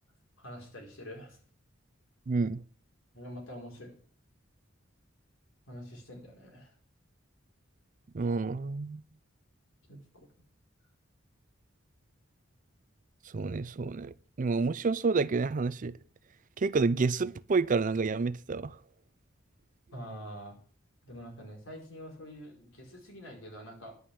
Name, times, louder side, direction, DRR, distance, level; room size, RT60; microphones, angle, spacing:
voice 1, 0.4-1.4 3.1-4.0 5.7-6.7 9.9-10.3 19.9-20.6 21.0-23.9, equal, 80° left, 4.7 m, -45 dB
voice 2, 2.3-2.6 8.1-9.0 13.3-16.0 16.6-18.8, right 4 dB, 40° right, 0.5 m, -29 dB
11.0 x 5.4 x 8.6 m
head